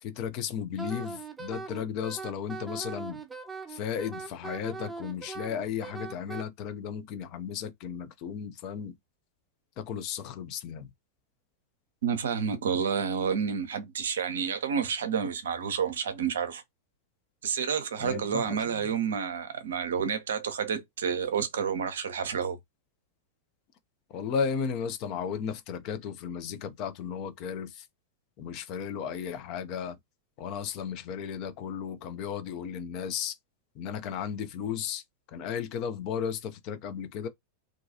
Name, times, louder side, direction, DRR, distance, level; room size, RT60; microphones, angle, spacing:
voice 1, 0.0-3.2 3.7-9.0 9.8-10.9 18.0-18.9 24.1-27.9 28.4-30.0 30.4-33.4 33.7-35.0 35.3-37.3, left 7 dB, 40° left, 0.5 m, -34 dB
Wind instrument woodwind instrument, 0.8-6.4, right 4 dB, 10° right, 0.4 m, -40 dB
voice 2, 12.0-16.6 17.4-22.6, right 7 dB, 65° right, 0.5 m, -29 dB
2.5 x 2.2 x 2.7 m
figure-of-eight pair, 90°, 0 cm